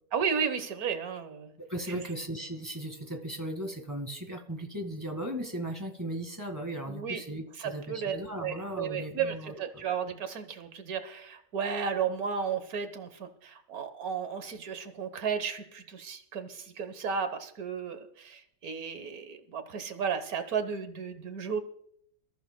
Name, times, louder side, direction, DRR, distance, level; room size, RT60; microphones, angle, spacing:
voice 1, 0.1-1.5 1.9-2.0 6.9-7.2 7.6-8.2 8.4-21.6, right 6 dB, 80° right, 9 dB, 1.6 m, -34 dB
voice 2, 1.7-9.8, right 1 dB, 15° right, 4 dB, 1.6 m, -37 dB
24.5 x 14.0 x 2.2 m, 0.67 s
omnidirectional pair, 1.5 m